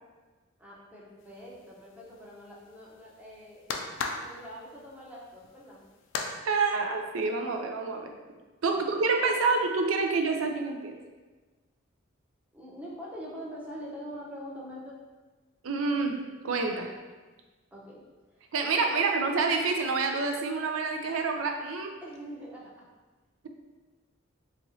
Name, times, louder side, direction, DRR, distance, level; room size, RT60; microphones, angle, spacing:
voice 1, 0.6-3.6 4.2-5.8 8.7-9.0 12.5-15.0 17.7-18.0 18.3-18.5 18.7-19.0 22.0-22.7, equal, 5° right, -6 dB, 0.7 m, -44 dB
sound 1, 1.2-6.3, left 4 dB, 65° left, 0.4 m, -39 dB
voice 2, 6.4-8.1 8.6-10.9 15.6-16.2 16.4-16.9 18.5-21.9, right 4 dB, 85° right, 4 dB, 0.5 m, -27 dB
4.1 x 2.9 x 2.7 m, 1.3 s
head